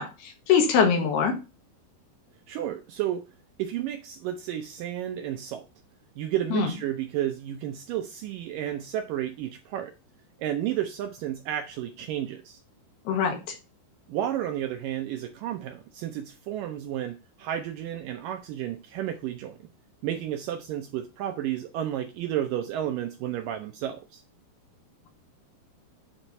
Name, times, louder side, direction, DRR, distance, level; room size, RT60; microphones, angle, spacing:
voice 1, 0.0-1.3 6.5-6.7 13.1-13.6, left 6 dB, 85° left, 3.6 m, -23 dB
voice 2, 2.5-3.3 3.6-5.7 6.2-9.9 10.4-12.6 14.1-19.6 20.0-24.2, right 11 dB, 80° right, 2.0 m, -32 dB
8.9 x 4.4 x 5.4 m
omnidirectional pair, 4.5 m